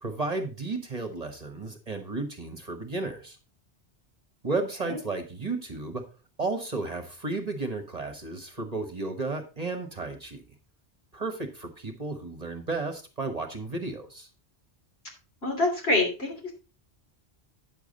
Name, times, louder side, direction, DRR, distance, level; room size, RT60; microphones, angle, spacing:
voice 1, 0.0-3.4 4.4-6.0 6.4-10.4 11.1-14.3, right 3 dB, 35° right, 5 dB, 1.3 m, -33 dB
voice 2, 15.4-16.5, left 2 dB, 65° left, 0 dB, 3.4 m, -26 dB
9.5 x 7.1 x 3.9 m, 0.31 s
omnidirectional pair, 1.1 m